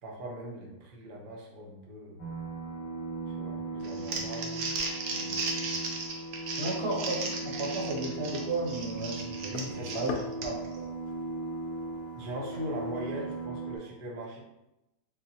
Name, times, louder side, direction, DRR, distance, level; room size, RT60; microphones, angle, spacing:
voice 1, 0.0-2.2 3.3-4.7 5.1-5.6 9.5-10.3 12.1-14.4, equal, 85° right, -3 dB, 0.4 m, -41 dB
sound 1, 2.2-13.8, right 2 dB, 40° left, 0.4 m, -38 dB
Crumpling crinkling, 3.8-10.8, right 3 dB, 65° right, 1.1 m, -36 dB
voice 2, 6.6-10.1 10.4-10.8, right 2 dB, 50° right, -3 dB, 0.8 m, -34 dB
sound 2, 8.4-13.5, left 4 dB, 75° left, 0.9 m, -46 dB
4.0 x 3.8 x 2.8 m, 0.90 s
omnidirectional pair, 2.2 m